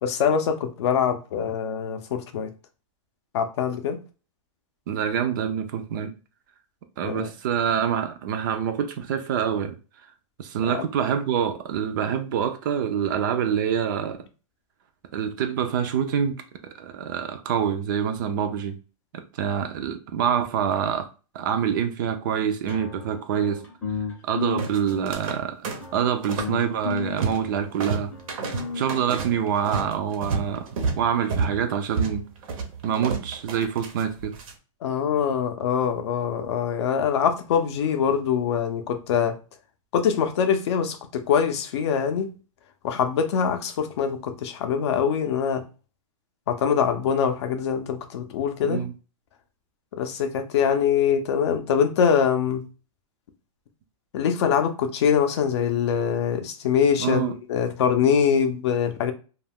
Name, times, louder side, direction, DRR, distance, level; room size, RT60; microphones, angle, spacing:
voice 1, 0.0-2.5 3.3-4.0 7.0-7.3 10.7-10.9 34.8-39.4 39.9-42.3 42.8-45.6 46.5-48.9 49.9-52.6 54.1-59.1, left 7 dB, 55° left, 0.5 m, -23 dB
voice 2, 4.9-6.1 7.0-9.7 10.4-14.2 15.1-16.4 16.8-18.7 19.1-21.1 21.3-23.6 24.2-25.7 25.9-28.1 28.7-30.7 31.0-32.2 32.8-34.3 48.6-48.9 57.0-57.3, right 8 dB, 35° right, 0.3 m, -26 dB
sound 1, 22.7-30.1, left 4 dB, 10° left, 0.6 m, -34 dB
sound 2, 24.6-25.4 25.6-26.6 26.8-27.5 27.8-34.5, right 4 dB, 75° right, 0.7 m, -30 dB
2.3 x 2.2 x 3.4 m
hypercardioid pair, 160°, 18 cm